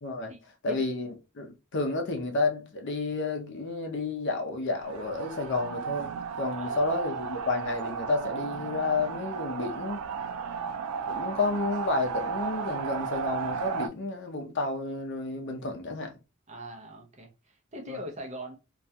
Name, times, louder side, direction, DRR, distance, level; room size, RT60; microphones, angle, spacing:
voice 1, 0.0-0.3 0.6-10.1 11.0-16.1 17.9-18.0, left 3 dB, 55° left, 0.6 m, -31 dB
sound 1, 4.8-13.9, right 6 dB, 85° right, 0.3 m, -34 dB
voice 2, 6.6-7.0 16.5-18.6, equal, 30° right, 0.6 m, -41 dB
2.3 x 2.2 x 2.7 m
head